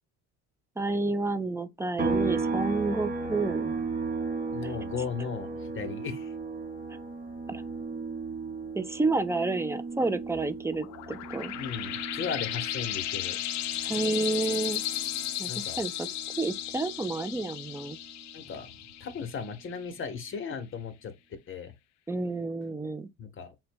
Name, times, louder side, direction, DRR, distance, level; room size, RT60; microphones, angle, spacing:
voice 1, 0.8-3.8 4.6-4.8 7.5-7.6 8.8-11.5 13.8-14.8 15.4-18.0 22.1-23.1, right 3 dB, 10° right, 0.3 m, -30 dB
sound 1, 2.0-15.5 15.9-18.1, right 4 dB, 25° right, 0.9 m, -36 dB
voice 2, 4.5-6.3 11.5-13.4 15.5-15.8 18.3-18.7 19.0-21.1 21.5-21.7 23.2-23.7, left 6 dB, 40° left, 0.9 m, -36 dB
sound 2, 10.6-19.8, left 13 dB, 60° left, 0.5 m, -35 dB
3.9 x 2.2 x 4.4 m
cardioid pair, 115°, 33 cm